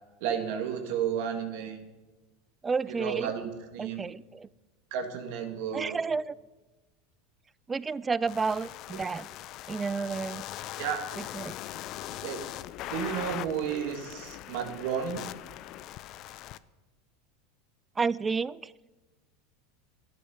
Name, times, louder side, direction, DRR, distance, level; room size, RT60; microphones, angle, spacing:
voice 1, 0.2-1.8 2.9-4.1 4.9-6.0 10.8-11.0 12.2-12.4 12.9-15.3, right 8 dB, 65° right, 5 dB, 1.9 m, -32 dB
voice 2, 2.6-3.3 3.8-4.5 5.7-6.3 7.7-9.3 9.7-10.4 11.2-11.6 18.0-18.7, right 4 dB, 20° right, 21 dB, 0.3 m, -31 dB
sound 1, 8.3-16.6, left 14 dB, 50° left, 0.4 m, -41 dB
11.5 x 9.4 x 5.6 m, 1.2 s
hypercardioid pair, 95°, 0 cm